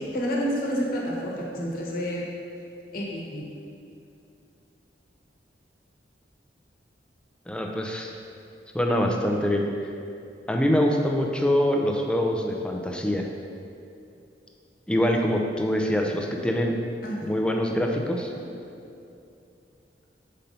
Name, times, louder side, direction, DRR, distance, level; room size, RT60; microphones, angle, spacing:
voice 1, 0.0-2.3 2.9-3.4 17.0-17.2, equal, 55° left, -3 dB, 1.1 m, -29 dB
voice 2, 7.5-8.1 8.7-9.6 10.5-13.3 14.9-16.7 17.2-18.3, equal, 5° left, 1 dB, 0.5 m, -24 dB
5.3 x 4.3 x 5.3 m, 2.6 s
head